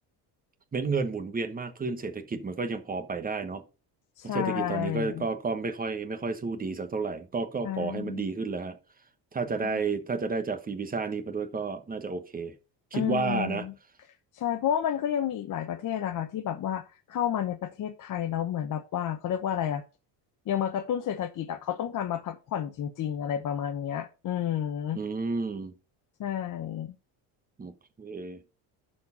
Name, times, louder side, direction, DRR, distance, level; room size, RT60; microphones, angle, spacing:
voice 1, 0.7-3.6 4.2-8.8 9.3-12.5 12.9-13.6 24.9-25.7 27.6-28.4, right 4 dB, 20° right, 1.2 m, -31 dB
voice 2, 4.2-5.3 7.6-8.2 9.6-9.8 12.9-13.7 14.3-19.8 20.5-25.0 26.2-26.9, left 10 dB, 45° left, 0.9 m, -31 dB
11.5 x 4.5 x 5.6 m
cardioid pair, 145°, 44 cm